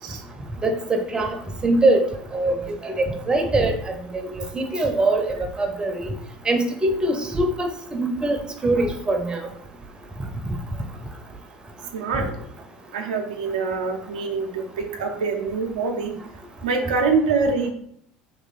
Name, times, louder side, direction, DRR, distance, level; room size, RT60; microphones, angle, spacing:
voice 1, 0.6-1.4 1.6-2.6 2.8-6.1 6.5-8.4 8.6-9.4 12.2-12.3, right 2 dB, 20° right, 4 dB, 0.7 m, -23 dB
voice 2, 11.9-12.3 12.9-16.1 16.6-17.7, right 4 dB, 85° right, 3 dB, 0.5 m, -24 dB
3.1 x 3.0 x 4.1 m, 0.68 s
hypercardioid pair, 75°, 4 cm